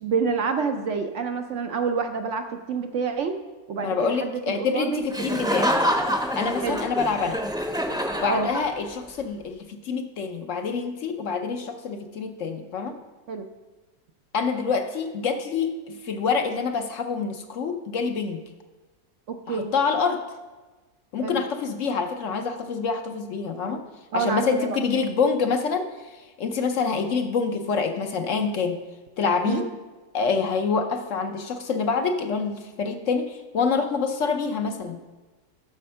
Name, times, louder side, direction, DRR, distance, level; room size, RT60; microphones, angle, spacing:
voice 1, 0.0-3.3 3.7-5.0 5.4-5.5 6.6-6.8 8.3-8.5 13.3-13.5 19.3-19.7 21.2-21.4 24.1-24.8 29.4-29.7, right 5 dB, 65° right, 6 dB, 0.8 m, -28 dB
voice 2, 3.8-5.8 6.4-7.4 8.2-13.0 14.3-18.4 19.5-20.2 21.1-23.8 24.1-28.8 29.2-29.6 30.1-35.0, left 5 dB, 60° left, 6 dB, 0.9 m, -26 dB
Laughter, 5.1-9.0, equal, 5° right, 0.6 m, -26 dB
8.4 x 6.4 x 5.6 m, 1.2 s
omnidirectional pair, 1.6 m